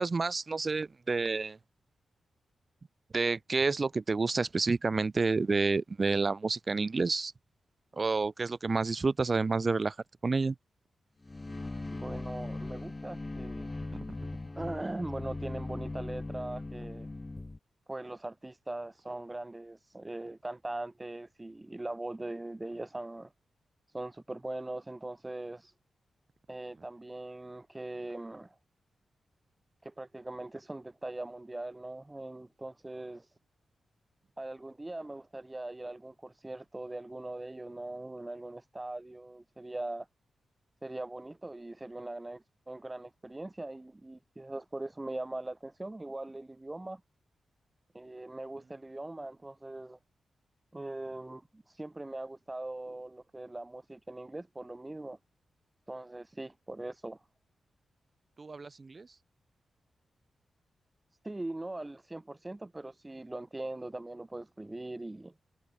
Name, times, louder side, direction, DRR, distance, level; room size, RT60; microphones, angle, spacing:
voice 1, 0.0-1.6 3.1-7.3 7.9-10.0 10.2-10.6 58.4-59.1, right 4 dB, 40° right, 0.6 m, -29 dB
sound 1, 11.2-17.6, left 2 dB, 25° left, 0.6 m, -39 dB
voice 2, 12.0-13.7 14.6-17.1 17.9-23.3 23.9-25.7 26.5-28.6 29.8-33.3 34.4-40.1 40.8-47.0 47.9-50.0 50.7-55.2 55.9-57.2 61.2-65.3, right 2 dB, 20° right, 2.2 m, -41 dB
cardioid pair, 75°, 0 cm